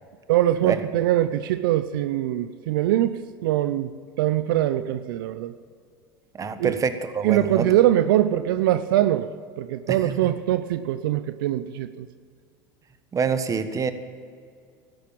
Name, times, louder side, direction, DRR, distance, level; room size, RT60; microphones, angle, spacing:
voice 1, 0.3-3.9 4.2-5.5 6.6-6.8 7.2-9.3 9.6-12.1, right 13 dB, 75° right, 12 dB, 0.6 m, -22 dB
voice 2, 6.3-7.7 9.9-10.3 13.1-13.9, right 5 dB, 30° right, 10 dB, 1.3 m, -26 dB
13.0 x 10.5 x 8.8 m, 2.2 s
hypercardioid pair, 85°, 11 cm